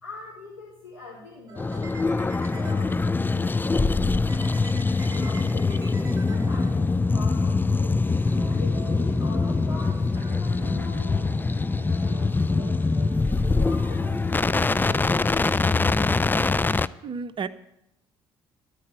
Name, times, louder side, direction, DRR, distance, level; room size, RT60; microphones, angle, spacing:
voice 1, 0.0-3.6 3.8-5.8 6.2-8.0 8.4-11.4 11.8-12.9 13.5-15.2 16.8-17.1, left 3 dB, 90° left, -7 dB, 4.0 m, -44 dB
sound 1, 1.5-3.4 4.3-7.1 8.0-15.5, right 2 dB, 25° right, 4.6 m, -44 dB
sound 2, 1.6-16.9, left 3 dB, 15° left, 0.6 m, -23 dB
voice 2, 16.8-17.5, right 5 dB, 40° right, 13 dB, 0.9 m, -33 dB
14.0 x 9.7 x 9.2 m, 0.83 s
figure-of-eight pair, 50°, 13 cm